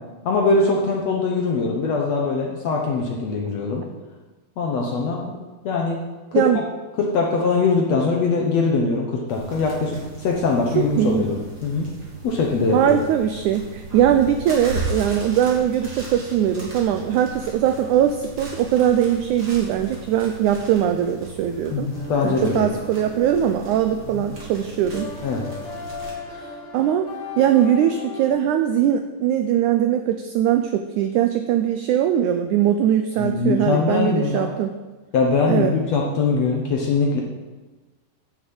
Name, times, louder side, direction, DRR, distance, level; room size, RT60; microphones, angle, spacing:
voice 1, 0.3-3.8 4.6-5.4 5.6-6.0 6.3-6.4 7.0-11.9 12.2-13.0 21.7-22.7 24.1-24.2 25.2-25.5 33.2-34.5 35.1-37.2, left 4 dB, 65° left, 0 dB, 1.8 m, -22 dB
sound 1, 9.3-26.1, right 2 dB, 30° right, 2.8 m, -37 dB
voice 2, 10.8-11.3 12.7-21.9 22.2-25.1 26.3-27.1 27.4-34.7 35.5-35.7, right 10 dB, 85° right, 7 dB, 1.7 m, -21 dB
sound 2, 21.9-28.3, left 3 dB, 30° left, 2.9 m, -37 dB
10.0 x 6.7 x 7.7 m, 1.2 s
omnidirectional pair, 4.1 m